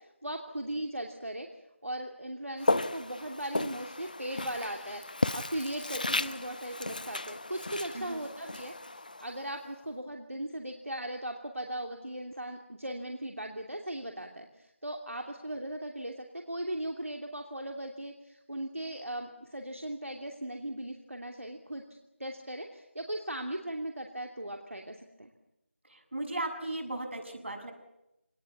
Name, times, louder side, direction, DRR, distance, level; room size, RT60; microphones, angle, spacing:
voice 1, 0.0-1.5 1.8-5.0 5.3-8.7 9.2-21.8 22.2-25.3, right 1 dB, 85° right, 3 dB, 2.8 m, -38 dB
Walk footsteps, 2.6-9.7, left 2 dB, 40° left, 0.8 m, -34 dB
voice 2, 25.8-27.7, right 2 dB, 60° right, 4 dB, 6.6 m, -36 dB
25.0 x 19.5 x 8.5 m, 0.90 s
figure-of-eight pair, 170°, 7 cm